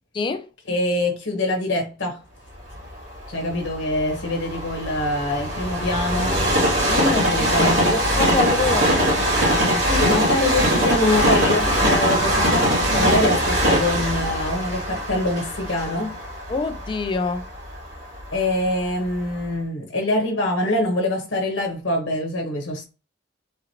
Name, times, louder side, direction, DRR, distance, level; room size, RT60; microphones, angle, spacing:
voice 1, 0.1-0.5 6.9-7.5 7.8-9.3 16.5-17.5, left 3 dB, 25° left, 0.3 m, -26 dB
voice 2, 0.7-2.2 3.3-6.4 7.3-8.0 9.7-16.2 18.3-22.9, left 1 dB, 90° left, 1.0 m, -24 dB
Train, 2.7-18.7 19.3-19.4, equal, 75° right, 2.2 m, -22 dB
3.9 x 2.8 x 2.8 m
head